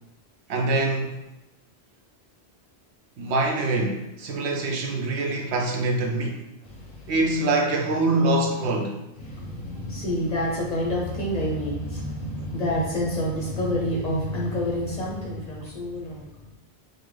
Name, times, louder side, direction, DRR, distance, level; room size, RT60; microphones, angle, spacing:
voice 1, 0.5-1.2 3.2-6.4 7.1-9.0, right 2 dB, 80° right, 0.8 m, -24 dB
voice 2, 6.7-7.1 9.2-16.3, equal, 45° left, 0.6 m, -28 dB
3.7 x 2.1 x 3.1 m
omnidirectional pair, 1.1 m